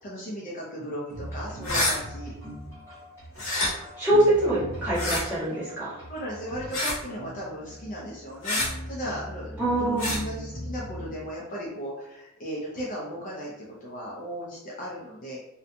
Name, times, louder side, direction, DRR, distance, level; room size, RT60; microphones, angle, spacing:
voice 1, 0.0-2.3 6.1-8.6 8.9-15.4, equal, 35° left, -4 dB, 0.4 m, -36 dB
sound 1, 1.1-11.1, equal, 10° left, 1.1 m, -40 dB
sound 2, 1.6-2.0 3.4-3.7 4.9-5.2 6.7-7.0 8.4-8.7 10.0-10.2, left 1 dB, 65° left, 0.8 m, -26 dB
voice 2, 4.0-6.0 9.6-10.2, right 1 dB, 10° right, -12 dB, 1.3 m, -24 dB
2.6 x 2.1 x 2.5 m, 0.88 s
head